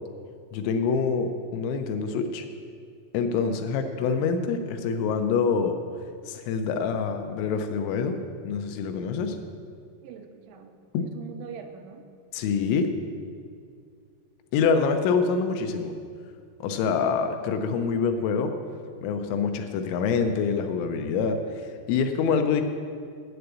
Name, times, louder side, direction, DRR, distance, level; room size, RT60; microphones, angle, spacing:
voice 1, 0.5-2.5 3.1-5.8 6.3-8.2 8.5-9.4 10.9-11.1 12.3-12.9 14.5-15.9 16.6-18.5 19.0-21.4 21.9-22.6, left 5 dB, 80° left, 6 dB, 2.9 m, -25 dB
voice 2, 3.5-4.2 9.0-9.4 10.0-10.8 11.0-12.1, right 7 dB, 90° right, 5 dB, 3.2 m, -44 dB
8.0 x 7.7 x 8.0 m, 2.2 s
omnidirectional pair, 5.8 m